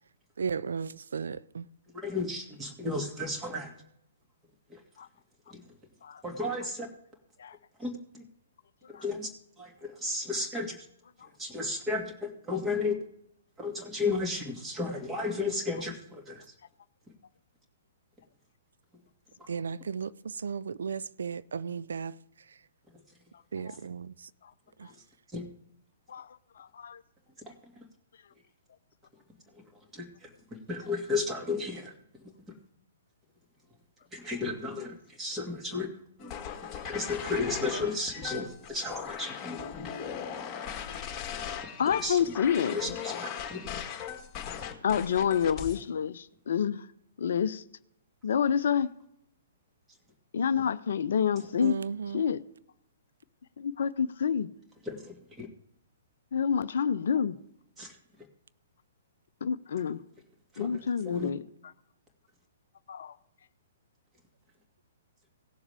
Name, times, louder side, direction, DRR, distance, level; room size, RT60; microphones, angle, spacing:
voice 1, 0.4-1.6 19.5-22.1 23.5-24.1 24.8-24.9 51.6-52.2, right 6 dB, 65° right, 0.5 m, -35 dB
voice 2, 1.9-3.7 4.7-4.8 5.5-5.6 6.2-6.9 7.8-8.2 8.9-9.3 9.6-10.9 11.4-12.9 13.6-16.5 19.4-19.5 24.9-25.0 25.3-25.5 27.5-27.8 29.9-31.9 32.2-32.3 34.1-35.9 36.8-39.7 41.9-42.2 42.7-43.7 54.8-55.5 57.8-58.0 60.5-61.3, left 3 dB, 15° right, 2.3 m, -34 dB
voice 3, 26.6-27.0 41.8-43.0 44.6-46.9 47.2-47.6 48.2-48.9 50.3-51.8 52.1-52.4 53.6-54.5 56.3-57.4 59.4-60.0 60.6-61.4 62.9-63.2, left 7 dB, 60° left, 0.5 m, -28 dB
sound 1, 36.2-45.8, left 8 dB, 20° left, 2.1 m, -38 dB
18.5 x 7.1 x 3.5 m
figure-of-eight pair, 115°, 0 cm